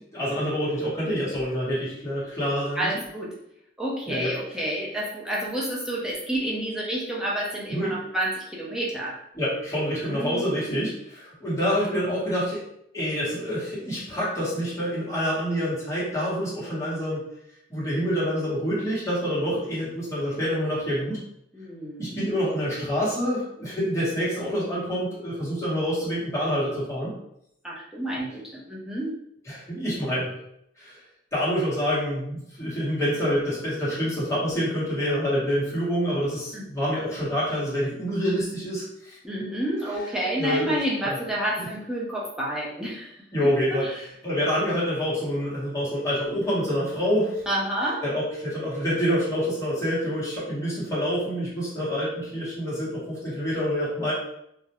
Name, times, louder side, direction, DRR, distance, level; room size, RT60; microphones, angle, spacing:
voice 1, 0.0-2.9 4.1-4.3 7.7-8.0 9.3-12.6 12.9-17.2 17.7-21.2 22.0-27.1 29.5-30.3 30.8-31.0 31.3-39.2 40.4-40.8 41.0-41.2 41.6-41.7 43.3-47.4 48.0-54.1, equal, 15° left, -9 dB, 1.1 m, -27 dB
voice 2, 2.8-3.3 3.8-9.1 9.9-10.5 21.5-22.3 27.6-29.1 36.5-36.6 39.2-43.1 43.4-43.9 47.5-48.0, right 1 dB, 5° right, -6 dB, 0.5 m, -29 dB
2.4 x 2.1 x 2.9 m, 0.77 s
head